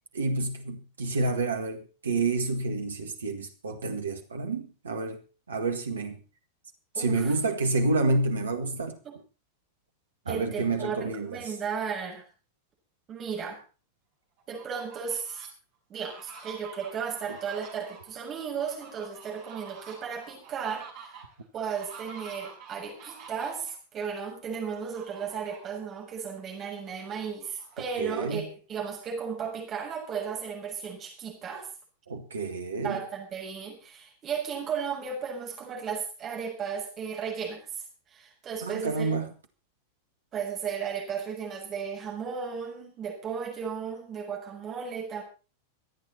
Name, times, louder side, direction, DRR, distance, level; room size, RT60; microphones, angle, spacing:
voice 1, 0.1-5.2 5.5-6.2 7.0-9.0 10.3-11.5 28.0-28.5 32.1-33.0 38.6-39.3, right 3 dB, 70° right, 1.8 m, -29 dB
voice 2, 6.9-7.3 9.0-9.2 10.3-12.3 13.1-13.6 14.5-15.4 15.9-21.2 21.5-31.7 32.8-37.8 38.1-39.1 40.3-45.2, right 6 dB, 30° right, 6.8 m, -35 dB
Fowl, 14.4-15.5 16.0-23.7 24.7-25.8 26.2-26.3 26.7-28.4, right 5 dB, 45° right, 6.8 m, -48 dB
26.0 x 8.9 x 4.3 m
figure-of-eight pair, 90°, 0 cm